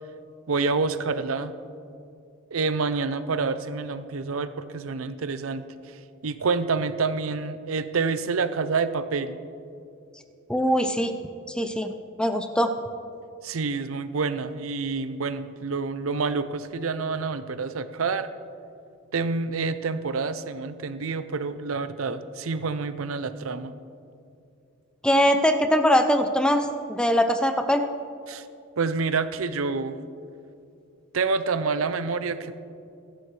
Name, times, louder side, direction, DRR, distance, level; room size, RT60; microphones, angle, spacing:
voice 1, 0.5-1.5 2.5-5.6 6.2-9.4 13.4-18.3 19.1-23.7 28.3-28.4 28.8-30.0 31.1-32.5, right 4 dB, 70° right, 12 dB, 0.6 m, -27 dB
voice 2, 10.5-11.1 11.5-11.9 12.2-12.7 25.0-27.8, equal, 5° left, 7 dB, 0.5 m, -22 dB
22.0 x 11.5 x 3.3 m, 2.6 s
head